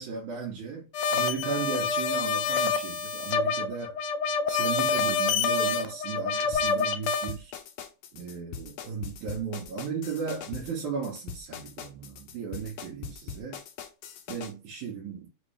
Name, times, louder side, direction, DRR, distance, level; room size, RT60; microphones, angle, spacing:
voice 1, 0.0-4.0 4.5-7.5 8.1-13.6 14.3-15.3, right 6 dB, 80° right, 2.6 m, -35 dB
sound 1, 0.9-7.3, left 5 dB, 90° left, 2.0 m, -27 dB
sound 2, 6.5-14.5, left 7 dB, 75° left, 1.7 m, -41 dB
6.1 x 2.6 x 3.2 m
omnidirectional pair, 3.4 m